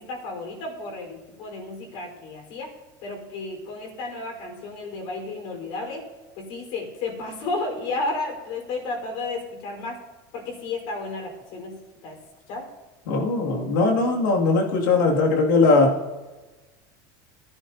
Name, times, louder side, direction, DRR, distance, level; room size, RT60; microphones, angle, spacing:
voice 1, 0.0-2.7 3.0-6.1 6.4-10.0 10.3-11.8 12.0-12.2 12.5-12.6, left 3 dB, 60° left, 0 dB, 4.5 m, -32 dB
voice 2, 13.1-16.0, left 3 dB, 90° left, 0 dB, 2.5 m, -20 dB
19.0 x 10.5 x 2.8 m, 1.2 s
supercardioid pair, 140°, 10 cm